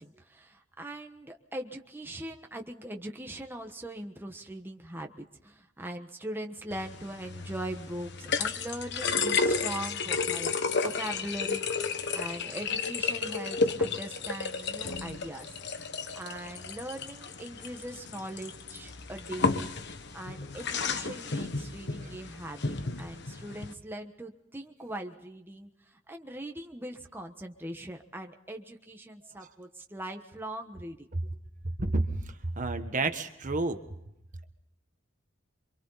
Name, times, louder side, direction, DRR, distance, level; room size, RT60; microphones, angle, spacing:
voice 1, 0.0-10.6 10.8-15.8 16.1-19.7 20.1-31.1, right 1 dB, 10° right, 3 dB, 1.3 m, -41 dB
sound 1, 6.7-23.7, left 4 dB, 60° left, 1.4 m, -32 dB
voice 2, 32.6-33.8, right 2 dB, 40° right, 7 dB, 1.4 m, -29 dB
28.0 x 25.0 x 4.1 m, 0.82 s
head